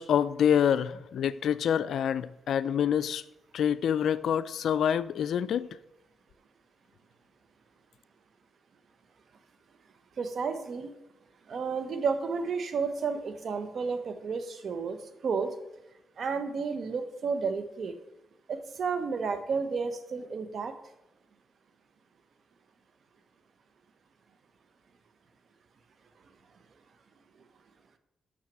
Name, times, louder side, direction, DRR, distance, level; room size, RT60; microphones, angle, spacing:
voice 1, 0.0-3.2 3.5-5.7, left 8 dB, 75° left, 16 dB, 0.4 m, -26 dB
voice 2, 10.2-10.9 11.5-15.5 16.2-17.9 18.5-20.7, right 5 dB, 65° right, 9 dB, 1.0 m, -32 dB
6.6 x 6.1 x 7.4 m, 0.92 s
cardioid pair, 60°, 0 cm